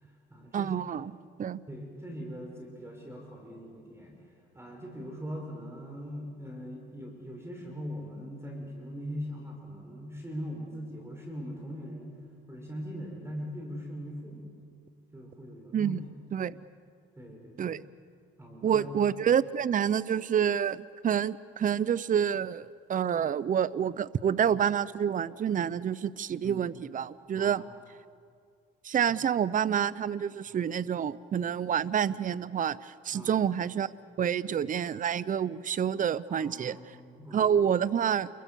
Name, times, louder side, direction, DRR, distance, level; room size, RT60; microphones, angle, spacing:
voice 1, 0.0-1.1 1.7-4.2 4.5-12.2 12.5-14.5 15.1-16.0 17.2-17.8 18.4-18.9 26.4-26.6 27.4-27.6 29.1-29.2 30.5-30.7 33.1-33.4 36.3-37.6, equal, 15° right, 1 dB, 5.5 m, -41 dB
voice 2, 0.5-1.1 1.4-1.6 15.7-16.0 16.3-16.6 17.6-17.8 18.6-27.6 28.8-33.9 34.2-36.8 37.3-38.3, right 8 dB, 40° right, 18 dB, 0.6 m, -28 dB
28.5 x 22.5 x 6.9 m, 2.2 s
cardioid pair, 90°, 20 cm